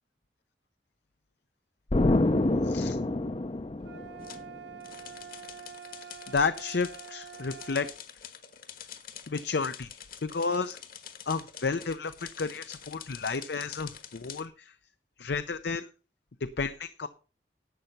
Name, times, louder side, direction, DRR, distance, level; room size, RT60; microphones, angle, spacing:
Explosion, 1.9-4.6, left 2 dB, 30° left, 0.5 m, -26 dB
voice 1, 2.6-3.0 6.3-7.9 9.3-9.9 10.2-10.8 11.3-14.7 15.2-15.9 16.6-17.1, left 4 dB, 70° left, 11 dB, 0.6 m, -31 dB
sound 1, 3.8-8.0, right 7 dB, 75° right, 0.9 m, -46 dB
sound 2, 4.2-4.4 4.8-14.5, left 8 dB, 55° left, 1.4 m, -46 dB
11.5 x 7.8 x 5.3 m, 0.35 s
head